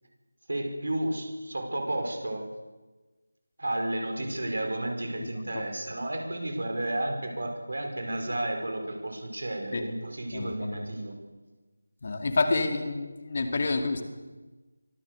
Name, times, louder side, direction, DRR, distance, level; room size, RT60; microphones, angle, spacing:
voice 1, 0.5-2.4 3.6-11.1, right 1 dB, 65° right, 4 dB, 5.6 m, -32 dB
voice 2, 10.3-10.9 12.0-14.0, left 3 dB, 40° left, 6 dB, 2.4 m, -28 dB
24.0 x 16.0 x 6.8 m, 1.2 s
figure-of-eight pair, 165°, 0 cm